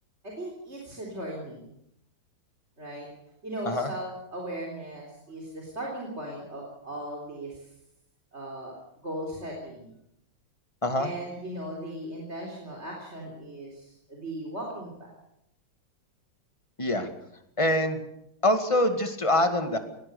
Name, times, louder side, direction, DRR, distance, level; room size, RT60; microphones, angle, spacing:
voice 1, 0.2-1.6 2.8-3.1 3.4-7.7 8.3-9.9 11.0-15.1, right 1 dB, 35° right, -1 dB, 4.2 m, -38 dB
voice 2, 16.8-17.1 17.6-18.0 18.4-19.8, left 1 dB, 15° left, 7 dB, 2.0 m, -24 dB
21.5 x 17.0 x 7.0 m, 0.77 s
omnidirectional pair, 2.0 m